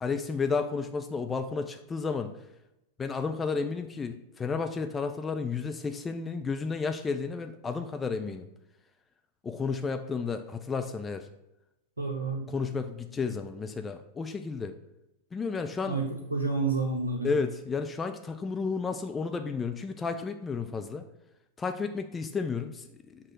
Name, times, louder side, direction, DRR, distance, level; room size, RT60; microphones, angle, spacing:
voice 1, 0.0-2.3 3.0-8.5 9.4-11.3 12.5-14.7 15.3-16.0 17.2-21.1 21.6-23.2, left 4 dB, 15° left, 7 dB, 0.5 m, -32 dB
voice 2, 12.0-12.5 15.8-17.3, right 3 dB, 80° right, 0 dB, 1.0 m, -30 dB
6.3 x 3.8 x 6.2 m, 0.92 s
figure-of-eight pair, 90°, 0 cm